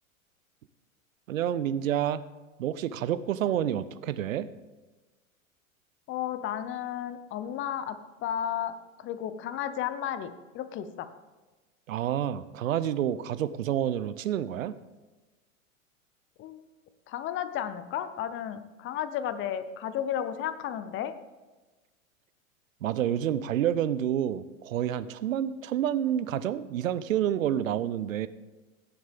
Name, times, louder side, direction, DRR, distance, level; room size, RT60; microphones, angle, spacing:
voice 1, 1.3-2.2 2.6-4.5 11.9-14.8 22.8-28.3, right 10 dB, 70° right, 15 dB, 0.7 m, -28 dB
voice 2, 6.1-11.1 16.4-16.6 17.1-21.1, left 10 dB, 30° left, 12 dB, 0.8 m, -33 dB
17.0 x 7.4 x 3.6 m, 1.2 s
hypercardioid pair, 100°, 42 cm